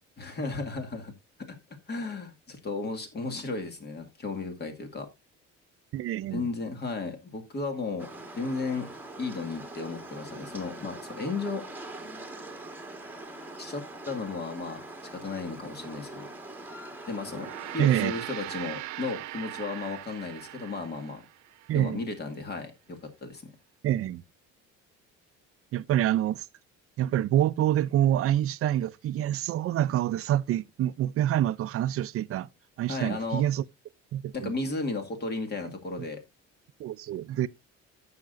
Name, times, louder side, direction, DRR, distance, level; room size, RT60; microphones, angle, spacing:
voice 1, 0.2-1.1 1.9-5.1 6.3-8.9 9.2-11.6 13.6-14.8 15.1-16.3 17.1-17.5 17.7-21.2 21.7-23.5 32.9-33.4 34.3-36.2, left 3 dB, 35° left, 2.0 m, -34 dB
voice 2, 5.9-6.4 17.8-18.1 21.7-22.0 23.8-24.2 25.7-26.5 27.0-32.5 32.8-33.6 34.1-34.5 36.8-37.5, right 12 dB, 50° right, 0.5 m, -26 dB
sound 1, 8.0-17.8, right 2 dB, 5° right, 1.6 m, -43 dB
Gong, 17.2-21.8, right 15 dB, 70° right, 0.8 m, -40 dB
15.0 x 5.9 x 2.5 m
cardioid pair, 125°, 29 cm